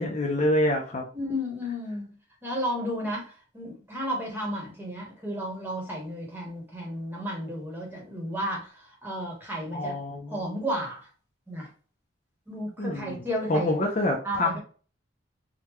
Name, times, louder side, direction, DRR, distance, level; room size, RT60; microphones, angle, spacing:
voice 1, 0.0-1.1 9.7-10.5 12.8-14.6, left 1 dB, 40° left, 1 dB, 0.5 m, -27 dB
voice 2, 1.1-2.1 2.4-3.3 3.5-10.0 10.3-11.0 11.5-11.7 12.5-13.7 14.2-14.6, equal, 10° right, -2 dB, 1.0 m, -33 dB
3.6 x 2.2 x 3.0 m, 0.39 s
head